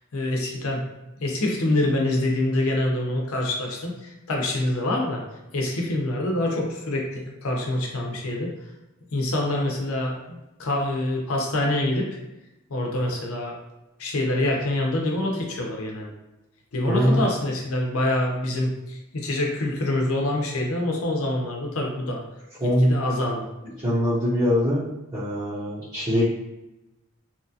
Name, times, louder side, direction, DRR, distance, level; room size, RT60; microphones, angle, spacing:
voice 1, 0.1-0.8 1.2-5.2 5.5-8.5 9.1-12.2 12.7-13.6 14.0-16.1 16.7-22.2 22.6-23.5, left 1 dB, 80° left, 0 dB, 0.6 m, -26 dB
voice 2, 16.9-17.2 22.6-22.9 23.8-24.8 25.1-26.3, equal, 20° right, -11 dB, 0.6 m, -22 dB
2.8 x 2.4 x 2.6 m, 0.98 s
head